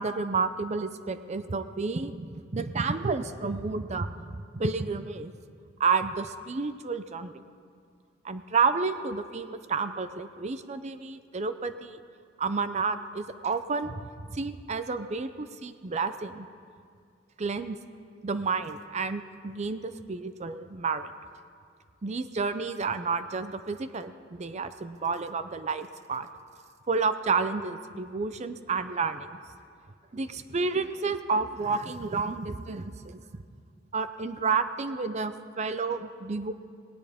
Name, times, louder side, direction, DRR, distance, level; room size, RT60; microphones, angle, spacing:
voice 1, 0.0-5.3 5.8-7.3 8.2-12.0 12.4-16.5 17.4-17.8 18.2-21.1 22.0-26.3 26.9-29.4 30.1-33.2 33.9-36.5, right 4 dB, 35° right, 11 dB, 0.5 m, -30 dB
18.5 x 18.0 x 3.5 m, 2.2 s
head